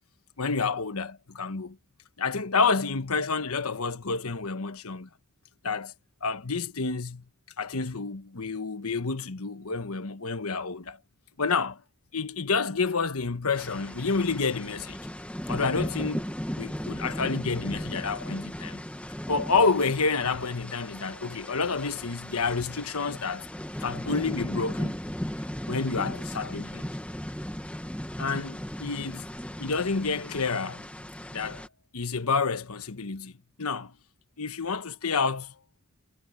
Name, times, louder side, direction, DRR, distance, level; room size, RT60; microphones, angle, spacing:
voice 1, 0.4-1.8 2.2-5.1 5.6-5.9 6.2-7.2 7.6-11.0 11.4-11.8 12.1-15.0 15.5-18.8 19.3-23.5 23.8-25.0 25.7-26.9 28.2-29.2 29.6-30.8 31.3-31.6 31.9-33.9 34.4-35.5, left 4 dB, 85° left, 1.2 m, -29 dB
sound 1, 13.5-31.7, equal, 5° left, 1.3 m, -36 dB
head